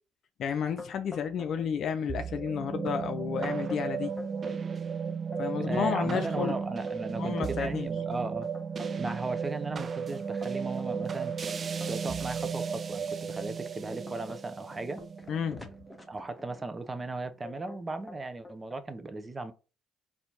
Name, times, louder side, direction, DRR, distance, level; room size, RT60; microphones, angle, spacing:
voice 1, 0.4-4.1 5.4-6.6 7.2-7.9 15.3-15.7, left 7 dB, 65° left, 0.5 m, -31 dB
sound 1, 0.8-1.7 2.0-2.5 2.9-3.0 3.4-4.6 5.1-9.4 9.8-12.3 13.0-13.1 13.6-16.7 17.4-17.8 18.1-18.8, left 3 dB, 10° left, 1.0 m, -46 dB
sound 2, 2.1-16.5, right 6 dB, 45° right, 0.4 m, -35 dB
voice 2, 5.6-8.5 9.0-11.3 11.9-15.0 16.1-19.5, right 3 dB, 25° right, 0.8 m, -36 dB
4.3 x 2.8 x 3.9 m
supercardioid pair, 70°, 0 cm